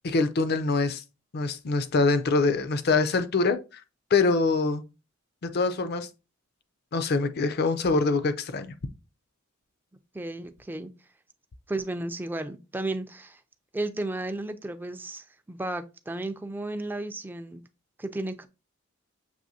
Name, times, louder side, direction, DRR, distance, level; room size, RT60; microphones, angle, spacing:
voice 1, 0.0-1.0 1.3-3.8 4.1-4.8 5.4-6.1 6.9-8.7, left 3 dB, 50° left, 0.5 m, -24 dB
voice 2, 10.1-10.9 11.7-13.4 13.7-17.6 18.0-18.5, right 2 dB, 10° right, 0.3 m, -33 dB
6.2 x 3.0 x 2.7 m
head